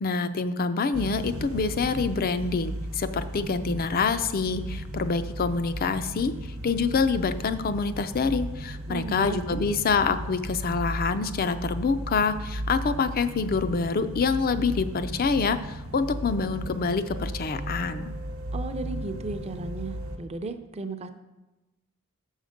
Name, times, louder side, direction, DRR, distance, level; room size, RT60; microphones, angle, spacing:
voice 1, 0.0-6.3 6.6-18.1, left 4 dB, 45° left, 11 dB, 0.4 m, -26 dB
sound 1, 0.9-20.2, right 1 dB, 70° right, 0.9 m, -36 dB
voice 2, 8.9-9.7 18.5-21.1, right 3 dB, 30° right, 8 dB, 0.6 m, -35 dB
7.5 x 6.4 x 5.1 m, 1.1 s
head